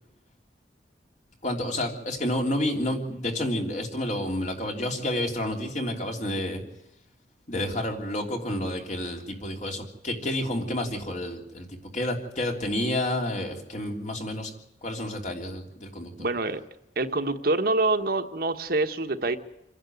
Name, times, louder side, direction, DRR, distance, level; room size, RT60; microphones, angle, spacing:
voice 1, 1.4-6.6 7.5-11.7 11.9-14.5 14.8-16.1, left 1 dB, 45° left, 2 dB, 3.3 m, -30 dB
voice 2, 16.2-16.6 17.0-19.4, right 2 dB, 60° right, 7 dB, 1.2 m, -26 dB
27.0 x 11.0 x 9.5 m, 0.86 s
head